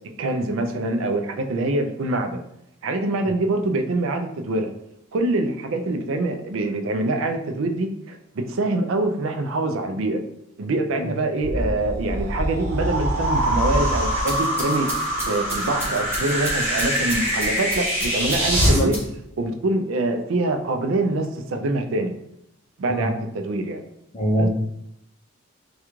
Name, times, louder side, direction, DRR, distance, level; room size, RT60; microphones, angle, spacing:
voice 1, 0.2-2.4 2.8-4.7 5.1-10.2 10.6-14.9 15.3-19.0 19.4-22.1 22.8-23.8 24.4-24.5, right 2 dB, 65° right, 5 dB, 0.4 m, -25 dB
sound 1, 11.4-18.8, equal, 40° right, 1.2 m, -24 dB
sound 2, 14.0-19.3, equal, 15° right, 1.0 m, -34 dB
voice 2, 24.1-24.5, equal, 25° left, -1 dB, 0.5 m, -22 dB
3.5 x 2.3 x 3.0 m, 0.78 s
head